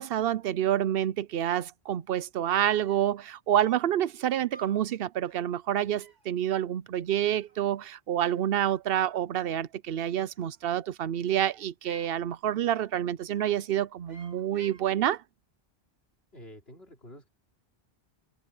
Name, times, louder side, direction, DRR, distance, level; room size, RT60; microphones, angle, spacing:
voice 1, 0.0-15.2, right 11 dB, 65° right, 0.8 m, -28 dB
sound 1, 2.9-3.2 3.7-4.0 4.5-4.9 5.2-5.5 6.0-6.3 7.1-8.0 8.2-8.9 10.2-10.8 11.3-12.2 12.7-13.0 13.3-13.7 14.1-14.9, right 1 dB, 45° right, 2.8 m, -55 dB
voice 2, 16.3-17.3, equal, 70° left, 4.2 m, -48 dB
open air
omnidirectional pair, 1.1 m